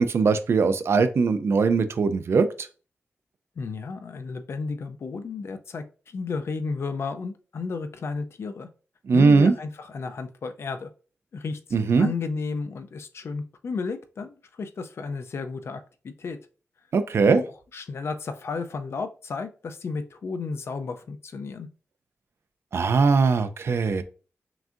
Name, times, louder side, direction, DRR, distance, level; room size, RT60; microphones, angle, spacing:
voice 1, 0.0-2.5 9.1-9.5 11.7-12.1 16.9-17.4 22.7-24.0, right 4 dB, 60° right, 11 dB, 0.4 m, -20 dB
voice 2, 3.6-8.7 9.1-10.9 11.3-16.4 17.3-17.5 17.7-21.7, left 4 dB, 60° left, 8 dB, 0.4 m, -33 dB
5.9 x 2.6 x 2.4 m, 0.37 s
wide cardioid pair, 145°, 5 cm